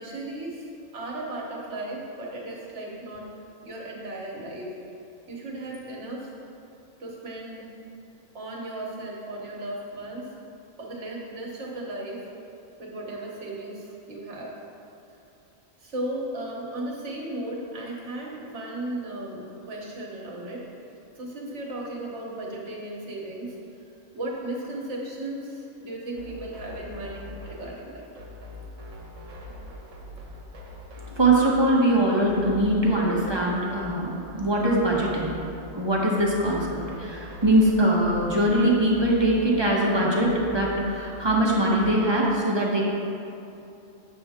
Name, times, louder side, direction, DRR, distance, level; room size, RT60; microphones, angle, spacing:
voice 1, 0.0-3.3 3.6-4.7 5.3-6.3 7.0-7.7 8.3-10.3 10.8-12.2 12.8-14.5 15.8-20.6 21.2-23.6 24.1-28.1, right 1 dB, 65° right, -3 dB, 1.6 m, -35 dB
sound 1, 26.2-42.1, left 2 dB, 80° right, 1.4 m, -43 dB
voice 2, 31.2-35.4 35.7-42.8, right 1 dB, 25° right, -3 dB, 1.0 m, -22 dB
8.6 x 6.7 x 3.6 m, 2.7 s
omnidirectional pair, 1.3 m